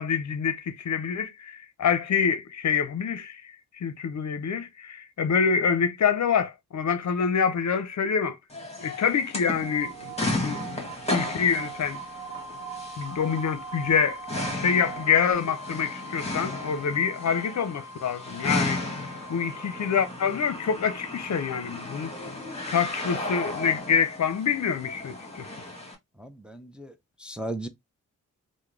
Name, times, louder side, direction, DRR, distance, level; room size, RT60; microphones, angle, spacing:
voice 1, 0.0-8.4 8.8-12.0 13.0-14.2 14.5-18.8 19.3-22.1 22.7-25.6, left 6 dB, 60° left, 0.6 m, -26 dB
sound 1, 8.5-25.9, left 2 dB, 20° left, 1.4 m, -35 dB
sound 2, 9.6-15.3, right 14 dB, 75° right, 0.9 m, -41 dB
Wind instrument woodwind instrument, 11.6-20.1, left 1 dB, 25° right, 1.4 m, -43 dB
voice 2, 26.2-26.9 27.2-27.7, right 1 dB, 5° right, 0.5 m, -36 dB
3.5 x 2.1 x 3.1 m
cardioid pair, 60°, 32 cm